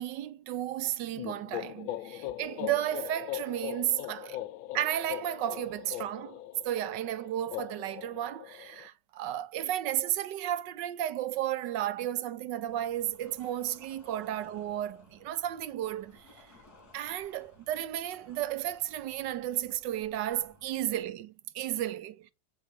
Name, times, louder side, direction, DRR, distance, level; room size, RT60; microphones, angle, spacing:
voice 1, 0.0-4.4 4.7-6.4 6.6-16.5 16.9-22.3, right 12 dB, 70° right, 1.3 m, -33 dB
sound 1, 1.2-8.9, left 14 dB, 80° left, 1.5 m, -40 dB
sound 2, 12.6-21.0, left 2 dB, 50° left, 4.7 m, -59 dB
6.8 x 5.8 x 7.5 m
omnidirectional pair, 2.2 m